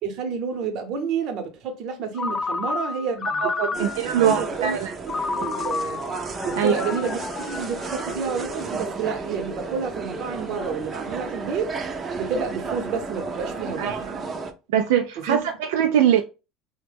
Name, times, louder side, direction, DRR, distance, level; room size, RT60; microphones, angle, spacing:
voice 1, 0.0-4.8 5.0-6.0 6.4-11.7 12.2-14.0 15.3-15.4, right 5 dB, 60° right, 0.8 m, -30 dB
Ringtone, 2.2-4.2 5.1-8.4, left 4 dB, 30° left, 0.3 m, -30 dB
voice 2, 3.3-4.9 6.6-6.9 13.8-14.2 14.7-16.2, right 9 dB, 90° right, 0.3 m, -22 dB
sound 1, 3.7-14.5, right 4 dB, 30° right, 0.5 m, -32 dB
2.9 x 2.1 x 3.3 m
supercardioid pair, 110°, 0 cm